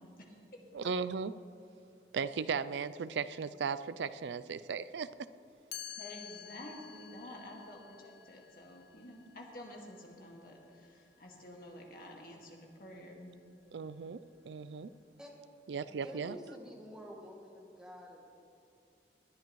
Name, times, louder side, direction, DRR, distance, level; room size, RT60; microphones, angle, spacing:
voice 1, 0.0-0.6 6.0-13.3, left 1 dB, 55° left, -1 dB, 1.9 m, -50 dB
voice 2, 0.7-1.3 2.1-5.1 13.7-14.2 14.5-14.9 15.7-16.4, right 5 dB, 85° right, 14 dB, 0.4 m, -36 dB
Chime, 5.7-11.6, left 10 dB, 80° left, 0.4 m, -51 dB
voice 3, 15.9-18.2, equal, 5° right, -1 dB, 1.4 m, -49 dB
19.5 x 10.5 x 3.1 m, 2.5 s
head